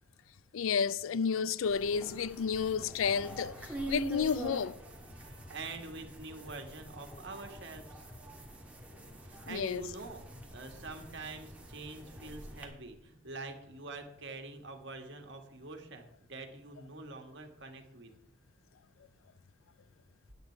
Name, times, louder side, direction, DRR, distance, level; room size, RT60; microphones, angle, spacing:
voice 1, 0.5-4.8 9.5-9.8, left 6 dB, 80° left, 0.4 m, -31 dB
sound 1, 1.7-12.6, right 1 dB, 5° right, 1.6 m, -45 dB
voice 2, 5.0-8.0 9.2-10.2 10.5-18.1, right 3 dB, 60° right, 1.7 m, -46 dB
9.3 x 9.2 x 4.6 m
head